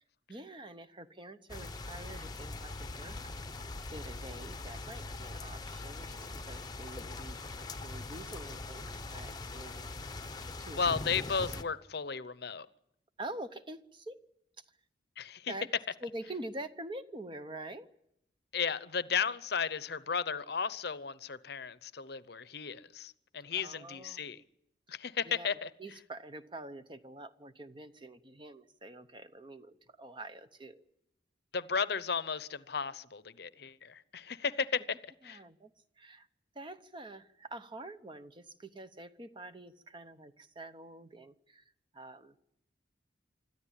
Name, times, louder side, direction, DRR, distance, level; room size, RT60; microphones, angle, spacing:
voice 1, 0.3-3.2 3.5-9.9 10.6-10.9 13.2-14.2 15.5-15.7 16.0-17.9 23.5-24.2 24.9-25.0 25.2-30.8 35.2-35.7 36.0-36.3 36.5-41.6 41.9-42.4, right 2 dB, 25° right, 0.8 m, -46 dB
sound 1, 1.5-11.6, left 3 dB, 20° left, 0.8 m, -42 dB
voice 2, 10.8-12.7 15.2-15.5 18.5-24.4 24.9-25.7 31.5-35.4, left 6 dB, 60° left, 0.8 m, -34 dB
26.0 x 13.5 x 10.0 m
head